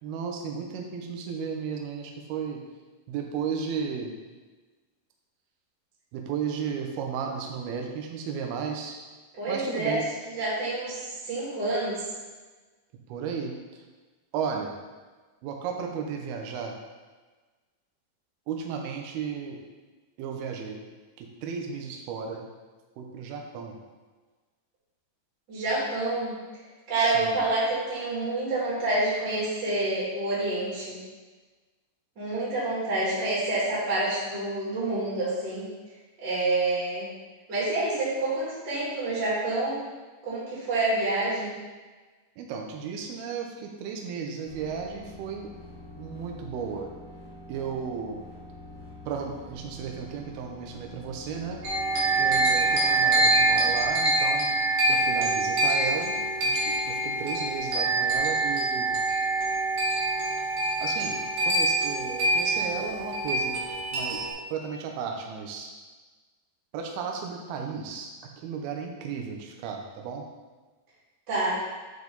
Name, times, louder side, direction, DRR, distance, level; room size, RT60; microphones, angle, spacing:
voice 1, 0.0-2.6 3.1-4.2 6.1-9.0 9.5-10.0 13.1-13.8 14.3-14.7 15.4-16.7 18.5-19.6 20.2-20.8 21.2-22.5 23.0-23.7 27.0-27.4 42.4-45.5 46.0-46.9 47.5-48.3 49.1-51.6 52.2-54.6 54.9-56.2 56.4-59.0 60.8-61.2 61.5-63.5 63.9-64.2 64.5-65.7 66.7-68.1 68.4-70.2, right 6 dB, 80° right, 2 dB, 2.4 m, -34 dB
voice 2, 9.4-10.0 10.3-12.0 25.5-26.3 26.9-31.0 32.2-35.7 36.2-37.1 37.5-39.8 40.2-41.5 71.3-71.5, right 2 dB, 30° right, -8 dB, 2.5 m, -28 dB
sound 1, 44.4-53.9, left 1 dB, 45° left, 1.9 m, -46 dB
sound 2, 51.6-64.3, right 2 dB, 60° right, 2.1 m, -25 dB
9.0 x 5.0 x 4.0 m, 1.3 s
omnidirectional pair, 5.5 m